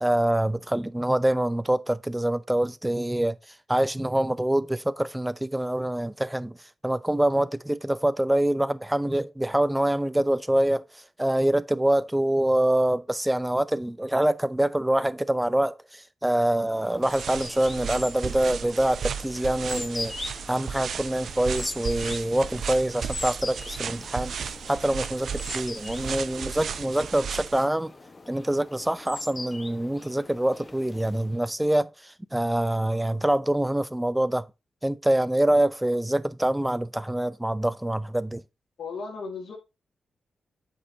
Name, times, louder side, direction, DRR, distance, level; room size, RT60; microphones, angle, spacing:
voice 1, 0.0-3.4 3.7-6.6 6.8-10.8 11.2-24.3 24.7-27.9 28.3-34.5 34.8-38.4, right 1 dB, 10° right, 0.5 m, -25 dB
sound 1, 16.6-31.5, left 3 dB, 35° left, 1.2 m, -42 dB
sound 2, 17.0-27.6, right 7 dB, 75° right, 0.5 m, -35 dB
voice 2, 38.8-39.6, left 4 dB, 80° left, 1.9 m, -35 dB
8.3 x 5.4 x 2.8 m
cardioid pair, 75°, 0 cm